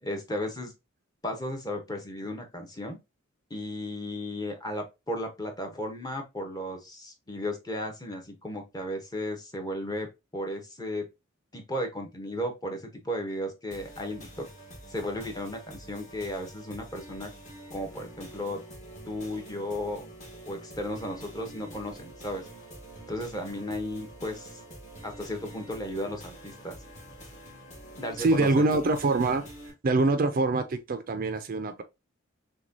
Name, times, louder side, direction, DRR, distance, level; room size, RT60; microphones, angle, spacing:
voice 1, 0.0-0.7 1.2-3.0 3.5-10.1 10.3-11.0 11.5-14.4 14.9-17.3 17.7-18.6 19.1-20.0 20.5-22.5 23.1-24.6 25.0-26.8 28.0-28.6, left 1 dB, 20° left, 0.8 m, -35 dB
sound 1, 13.7-29.7, right 1 dB, 35° left, 1.4 m, -46 dB
voice 2, 28.2-29.5 29.8-31.8, right 3 dB, 45° right, 0.4 m, -24 dB
6.0 x 2.2 x 2.6 m
head